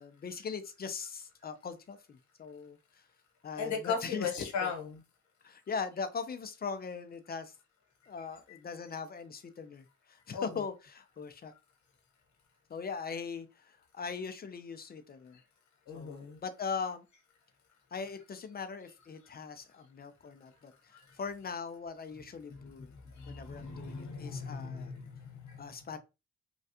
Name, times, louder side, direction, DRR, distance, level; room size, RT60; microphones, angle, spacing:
voice 1, 0.0-2.8 3.4-4.3 4.6-4.7 5.4-7.5 8.1-11.5 12.7-15.4 15.9-17.0 17.9-20.7 21.2-22.9 23.3-25.0 25.6-26.0, left 5 dB, 30° left, 0.4 m, -40 dB
voice 2, 3.6-5.0 8.5-8.6 10.3-10.5 15.9-16.4 20.9-21.2 22.6-25.6, left 5 dB, 70° left, 1.0 m, -38 dB
3.3 x 2.3 x 2.7 m
cardioid pair, 90°, 30 cm